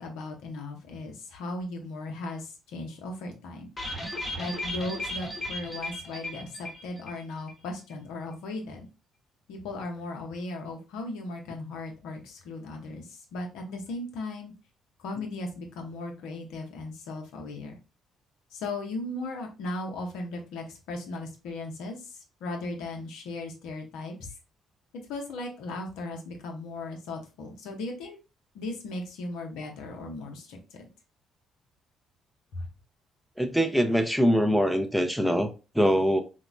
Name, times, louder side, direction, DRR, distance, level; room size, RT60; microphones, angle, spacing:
voice 1, 0.0-3.7 4.4-8.9 9.5-14.5 15.0-17.8 18.5-24.3 25.1-28.2 28.5-30.6 32.5-32.7, left 2 dB, 70° left, 0.6 m, -37 dB
sound 1, 3.8-7.2 7.5-7.6 7.9-8.0, left 1 dB, 30° left, 0.8 m, -35 dB
voice 2, 33.4-35.5 35.7-36.2, equal, ahead, 0.5 m, -23 dB
2.9 x 2.0 x 2.4 m
hypercardioid pair, 45°, 0 cm